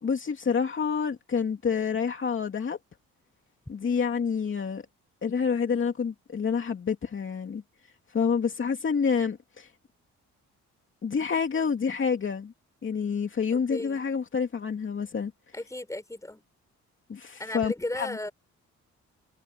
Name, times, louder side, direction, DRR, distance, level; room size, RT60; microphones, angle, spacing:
voice 1, 0.0-2.8 3.7-4.8 5.2-7.6 8.1-9.7 11.0-12.5 12.8-15.3 17.1-18.3, left 6 dB, 40° left, 2.8 m, -28 dB
voice 2, 13.5-14.0 15.5-16.4 17.4-18.3, left 1 dB, 10° left, 6.1 m, -35 dB
cardioid pair, 90°, 30 cm